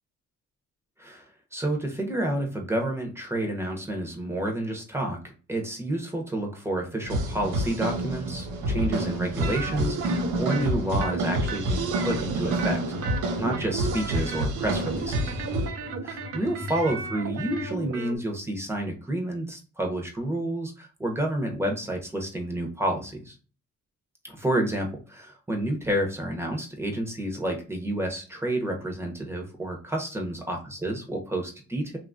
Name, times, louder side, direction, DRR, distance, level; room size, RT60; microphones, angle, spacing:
voice 1, 1.5-12.8 13.4-15.3 16.0-23.3 24.2-32.0, right 1 dB, 10° right, 2 dB, 0.9 m, -30 dB
sound 1, 7.0-15.7, right 1 dB, 85° right, 0.7 m, -28 dB
sound 2, 9.4-10.7 11.0-12.8 13.0-18.2, right 6 dB, 50° right, 0.6 m, -35 dB
sound 3, 12.9-17.9, left 4 dB, 35° left, 0.7 m, -40 dB
2.8 x 2.4 x 2.6 m, 0.36 s
cardioid pair, 90°, 30 cm